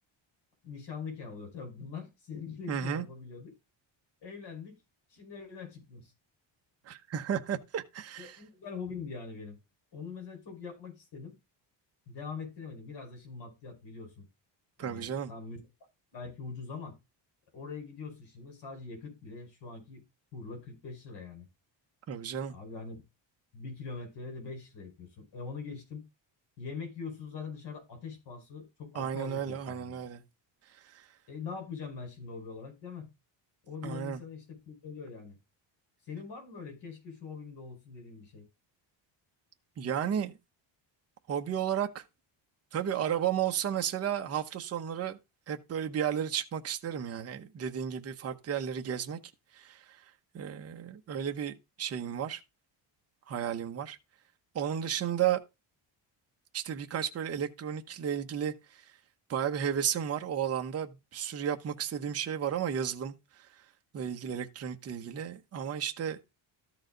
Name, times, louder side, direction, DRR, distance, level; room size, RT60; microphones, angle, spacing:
voice 1, 0.6-3.5 4.2-4.8 5.1-6.1 8.2-9.6 9.9-11.4 12.1-14.3 14.8-15.7 16.1-17.0 17.5-20.0 20.3-21.5 22.5-23.0 23.5-26.0 26.6-30.0 31.3-33.1 33.7-35.4 36.0-38.5, left 5 dB, 60° left, 4.9 m, -43 dB
voice 2, 2.7-3.0 6.9-8.4 14.8-15.3 22.1-22.5 28.9-30.2 30.9-31.0 33.8-34.2 39.8-40.3 41.3-42.0 42.7-45.2 45.5-49.2 49.5-50.0 50.3-52.4 53.3-54.0 54.5-55.4 56.5-58.5 59.3-63.1 63.9-66.2, right 9 dB, 30° right, 0.9 m, -33 dB
13.5 x 4.8 x 3.8 m
cardioid pair, 175°, 46 cm